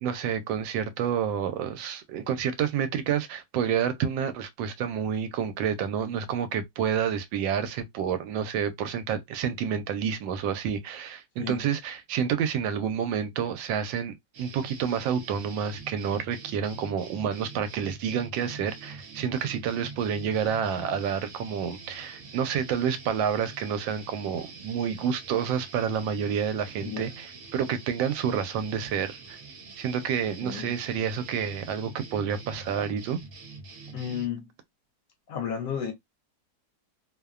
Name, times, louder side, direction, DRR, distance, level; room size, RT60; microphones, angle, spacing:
voice 1, 0.0-29.4 29.8-33.2, right 8 dB, 90° right, 1.3 m, -29 dB
sound 1, 14.3-34.3, right 4 dB, 65° right, 0.8 m, -45 dB
voice 2, 26.8-27.1 30.4-30.8 33.9-34.5 35.3-35.9, left 8 dB, 65° left, 1.0 m, -33 dB
3.0 x 2.1 x 2.3 m
omnidirectional pair, 2.0 m